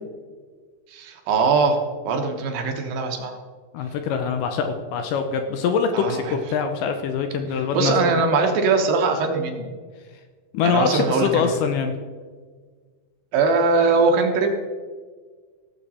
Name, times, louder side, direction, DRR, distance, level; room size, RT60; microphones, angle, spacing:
voice 1, 0.9-1.8 2.0-3.3 5.9-6.4 7.7-9.7 10.6-11.5 13.3-14.5, right 4 dB, 80° right, 3 dB, 3.1 m, -21 dB
voice 2, 3.7-7.9 10.5-11.9, left 6 dB, 75° left, 6 dB, 2.2 m, -23 dB
17.0 x 7.6 x 4.2 m, 1.5 s
omnidirectional pair, 4.1 m